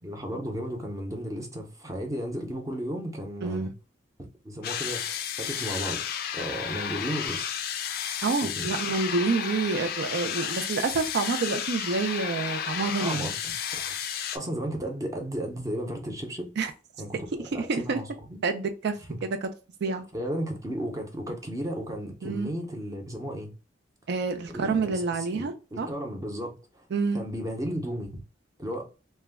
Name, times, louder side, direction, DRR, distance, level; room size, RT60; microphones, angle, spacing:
voice 1, 0.0-3.7 4.2-6.1 6.3-7.5 8.4-8.7 13.0-16.5 17.0-18.4 19.1-19.2 20.1-23.5 24.5-26.9 27.1-28.2 28.6-28.9, equal, 15° right, 0.6 m, -34 dB
sound 1, 4.6-14.4, left 8 dB, 50° left, 0.3 m, -32 dB
voice 2, 8.2-13.3 16.6-16.7 17.7-18.0 18.4-18.9 19.4-19.5 19.8-20.0 22.2-22.5 24.1-25.9 26.9-27.2, right 4 dB, 60° right, 0.4 m, -28 dB
2.2 x 2.1 x 3.3 m
head